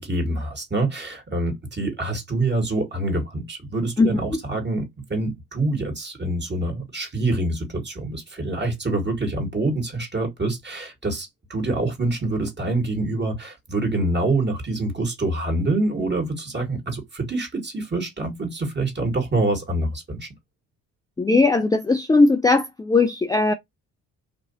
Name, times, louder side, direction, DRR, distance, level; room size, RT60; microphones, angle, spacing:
voice 1, 0.0-20.3, right 2 dB, 30° right, 1.7 m, -26 dB
voice 2, 21.2-23.5, left 3 dB, 10° left, 0.4 m, -18 dB
3.0 x 2.6 x 2.6 m
supercardioid pair, 60°, 36 cm